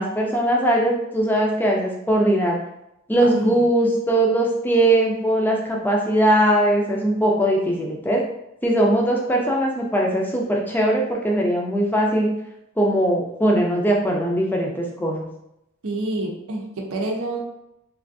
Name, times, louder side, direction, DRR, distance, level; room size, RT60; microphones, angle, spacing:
voice 1, 0.0-2.6 3.1-8.2 8.6-12.3 12.8-15.3, right 1 dB, 10° left, -1 dB, 0.4 m, -20 dB
voice 2, 15.8-17.4, right 2 dB, 85° right, 1 dB, 0.6 m, -28 dB
3.3 x 2.4 x 2.6 m, 0.83 s
head